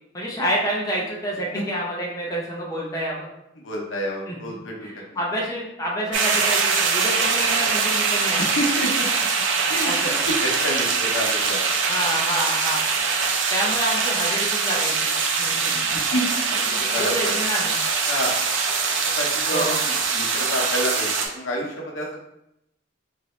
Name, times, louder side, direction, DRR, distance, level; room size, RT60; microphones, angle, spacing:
voice 1, 0.1-3.3 4.3-4.4 4.8-8.4 9.8-10.1 11.9-12.8 13.5-14.9 15.4-15.7 16.7-17.7 19.5-19.8, equal, 20° left, -4 dB, 0.6 m, -28 dB
voice 2, 3.6-5.2 8.4-9.1 9.7-9.9 10.3-11.6 13.6-13.8 15.6-17.3 18.1-18.4 19.0-22.2, equal, 75° left, -2 dB, 0.8 m, -29 dB
sound 1, 6.1-21.3, right 5 dB, 70° right, 0.5 m, -23 dB
3.0 x 2.6 x 3.2 m, 0.82 s
head